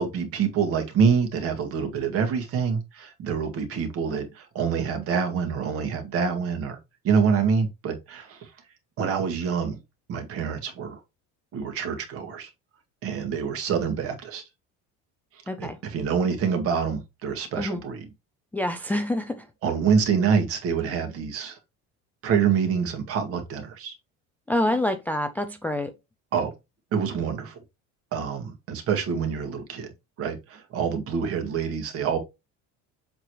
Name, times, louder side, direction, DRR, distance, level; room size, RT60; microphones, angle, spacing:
voice 1, 0.0-6.8 7.0-8.5 9.0-9.8 10.1-11.0 11.5-12.5 13.0-14.4 15.6-18.1 19.6-21.6 22.2-23.9 26.3-26.5 26.9-27.6 28.1-29.9 30.2-32.2, right 6 dB, 50° right, 1.9 m, -26 dB
voice 2, 15.5-15.8 17.6-17.8 18.5-19.4 24.5-25.9, left 1 dB, 5° left, 0.4 m, -26 dB
7.4 x 4.7 x 3.0 m
cardioid pair, 170°, 30 cm